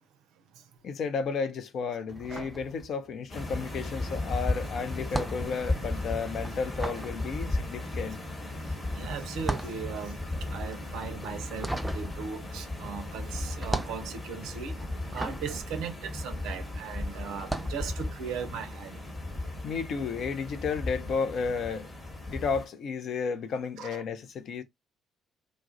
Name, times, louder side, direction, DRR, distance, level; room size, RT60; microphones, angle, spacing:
voice 1, 0.8-8.2 19.6-21.9 22.3-24.6, left 5 dB, 55° left, 0.4 m, -32 dB
sound 1, 2.1-3.3 3.6-16.8 17.3-17.8, right 2 dB, 10° right, 0.5 m, -37 dB
sound 2, 3.3-22.7, left 2 dB, 30° left, 1.1 m, -36 dB
voice 2, 8.9-10.2 10.5-19.0 23.8-24.0, right 6 dB, 65° right, 0.5 m, -38 dB
2.3 x 2.0 x 2.7 m
figure-of-eight pair, 45°, 0 cm